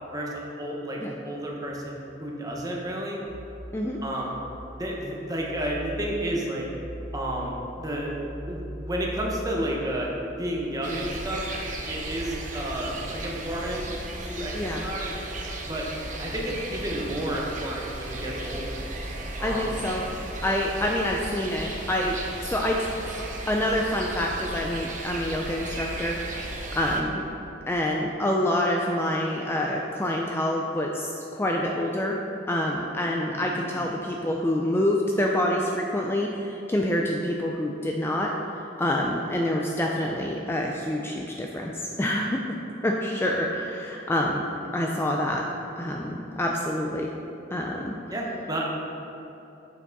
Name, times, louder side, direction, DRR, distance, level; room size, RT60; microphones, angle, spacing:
voice 1, 0.1-1.9 2.2-3.2 4.0-4.3 4.8-6.7 7.1-8.1 8.5-13.9 14.2-15.1 15.6-15.8 16.2-18.8 19.4-19.7 33.3-33.6 48.1-48.7, right 1 dB, 20° right, -2 dB, 1.0 m, -31 dB
sound 1, 3.2-10.6, right 1 dB, 90° right, 1.5 m, -41 dB
sound 2, 10.8-27.0, right 1 dB, 45° right, 0.8 m, -35 dB
voice 2, 19.1-20.1 20.4-22.9 23.5-26.2 26.7-27.2 27.7-32.2 32.5-38.3 38.8-42.6 42.8-44.4 44.7-45.4 45.8-47.1 47.5-47.9, left 1 dB, 15° left, -1 dB, 0.4 m, -27 dB
7.2 x 5.8 x 4.0 m, 3.0 s
head